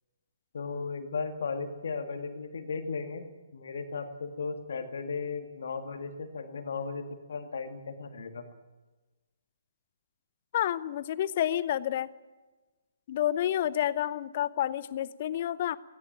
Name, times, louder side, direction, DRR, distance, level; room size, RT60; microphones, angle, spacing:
voice 1, 0.5-3.3 3.5-7.0 7.3-8.5, left 4 dB, 55° left, 7 dB, 2.0 m, -36 dB
voice 2, 10.5-12.1 13.1-15.8, left 11 dB, 35° left, 18 dB, 0.7 m, -29 dB
17.5 x 17.5 x 9.1 m, 1.2 s
figure-of-eight pair, 130°, 0 cm